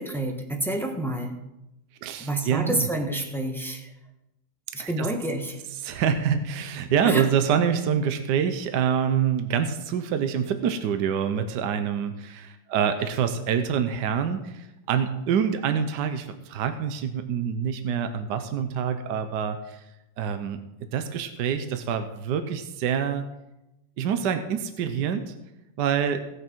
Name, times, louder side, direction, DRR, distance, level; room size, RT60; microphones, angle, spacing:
voice 1, 0.0-1.3 2.2-3.9 4.7-5.6 6.3-6.4 7.0-7.3, right 1 dB, ahead, 2 dB, 1.1 m, -28 dB
voice 2, 2.0-2.9 4.8-5.1 5.8-19.8 20.2-20.6 20.9-23.3 24.0-25.3 25.8-26.2, right 7 dB, 70° right, 8 dB, 1.4 m, -26 dB
17.5 x 6.5 x 4.5 m, 0.92 s
omnidirectional pair, 2.0 m